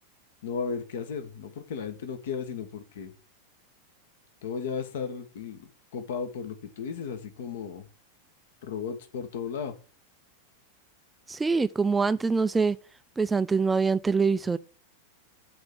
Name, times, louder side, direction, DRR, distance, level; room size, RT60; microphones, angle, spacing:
voice 1, 0.4-3.1 4.4-7.9 8.6-9.7, left 6 dB, 55° left, 1.4 m, -35 dB
voice 2, 11.3-12.8 13.2-14.6, right 4 dB, 10° right, 0.4 m, -24 dB
6.4 x 4.3 x 6.6 m
figure-of-eight pair, 90°, 0 cm